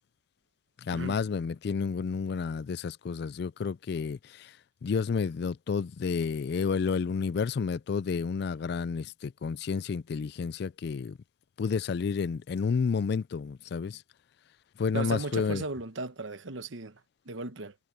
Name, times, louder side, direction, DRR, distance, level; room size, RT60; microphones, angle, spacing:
voice 1, 0.8-4.6 4.8-11.2 11.6-14.0 14.8-15.6, left 5 dB, 55° left, 0.3 m, -30 dB
voice 2, 14.9-17.7, right 3 dB, 80° right, 1.1 m, -36 dB
head